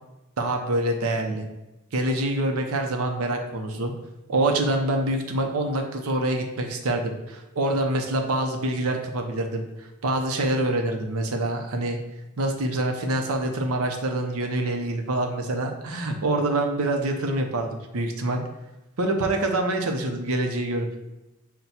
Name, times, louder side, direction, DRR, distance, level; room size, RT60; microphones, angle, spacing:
voice 1, 0.4-1.4 1.9-3.9 4.3-12.0 12.4-17.7 17.9-18.4 19.0-20.9, right 1 dB, 75° right, 3 dB, 0.7 m, -26 dB
5.8 x 2.2 x 4.1 m, 1.0 s
head